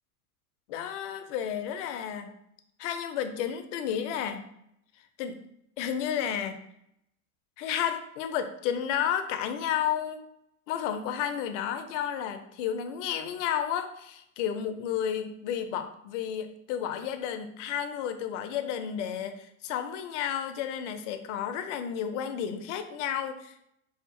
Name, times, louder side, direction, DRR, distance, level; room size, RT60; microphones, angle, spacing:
voice 1, 0.7-2.3 2.8-4.4 5.2-5.4 5.8-6.6 7.6-10.2 10.7-23.6, left 9 dB, 55° left, 9 dB, 0.5 m, -32 dB
2.7 x 2.3 x 2.5 m, 0.77 s
hypercardioid pair, 105°, 43 cm